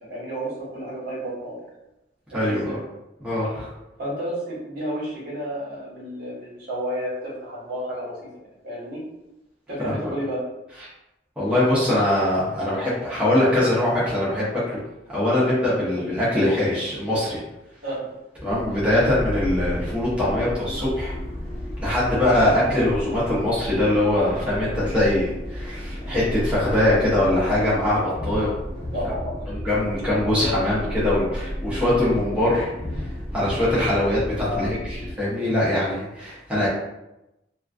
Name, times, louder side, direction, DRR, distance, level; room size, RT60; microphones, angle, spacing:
voice 1, 0.1-1.6 2.3-2.8 4.0-8.2 8.6-9.0 9.7-10.4 15.9-16.1 17.8-17.9 22.1-22.2 28.9-29.3 30.3-30.6 34.5-34.7, equal, 60° right, -8 dB, 1.3 m, -31 dB
voice 2, 2.3-2.8 3.2-3.7 9.8-10.1 11.4-14.8 15.1-17.4 18.4-21.2 21.8-28.5 29.5-33.1 33.3-36.7, left 1 dB, 5° right, -10 dB, 0.9 m, -22 dB
sound 1, 18.5-35.1, equal, 20° left, 0.9 m, -32 dB
2.9 x 2.5 x 2.4 m, 0.94 s
head